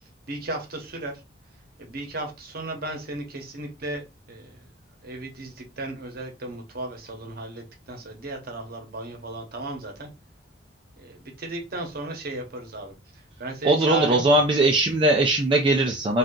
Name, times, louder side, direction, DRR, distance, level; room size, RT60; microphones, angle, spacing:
voice 1, 0.3-1.2 1.8-4.0 4.3-4.6 5.0-10.1 11.0-14.3, right 2 dB, 50° right, 0.9 m, -35 dB
voice 2, 13.6-16.2, right 2 dB, 25° right, 0.3 m, -20 dB
2.7 x 2.3 x 3.6 m
head